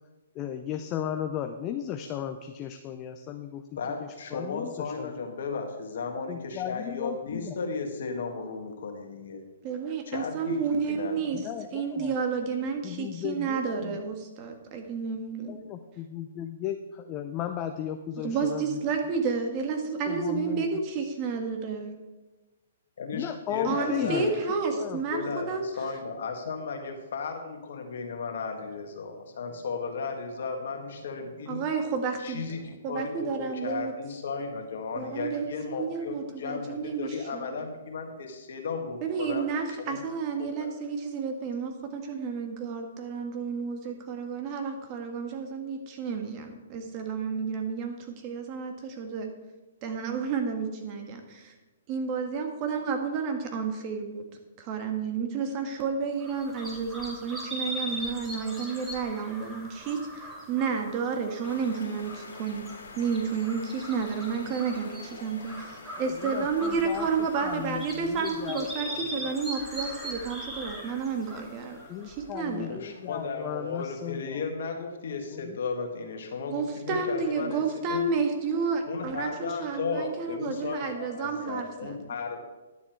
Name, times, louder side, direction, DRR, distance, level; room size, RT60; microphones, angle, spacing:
voice 1, 0.3-3.6 4.0-5.1 6.3-7.6 11.3-12.1 12.8-14.0 15.5-18.8 20.1-20.7 23.1-24.5 24.7-25.0 66.1-67.1 67.4-69.3 71.9-74.8 75.3-75.6, left 10 dB, 30° left, 6 dB, 0.6 m, -36 dB
voice 2, 3.8-9.4 10.1-10.6 10.9-11.2 23.0-31.6 32.2-39.5 39.8-40.0 40.4-40.7 72.7-77.6 77.9-78.1 78.9-82.4, left 4 dB, 65° left, 3 dB, 1.8 m, -35 dB
voice 3, 9.6-11.5 11.7-15.6 18.2-22.0 23.6-25.7 31.5-32.4 32.8-33.9 35.0-37.5 39.0-49.3 49.8-51.5 51.9-54.2 54.6-62.6 62.9-71.8 72.1-72.8 76.5-82.0, right 5 dB, 35° right, 4 dB, 1.5 m, -31 dB
sound 1, 56.2-72.2, equal, 10° right, 2.4 m, -40 dB
sound 2, 61.4-74.4, left 3 dB, 85° left, 2.3 m, -49 dB
11.0 x 7.2 x 4.5 m, 1.1 s
hypercardioid pair, 135°, 0 cm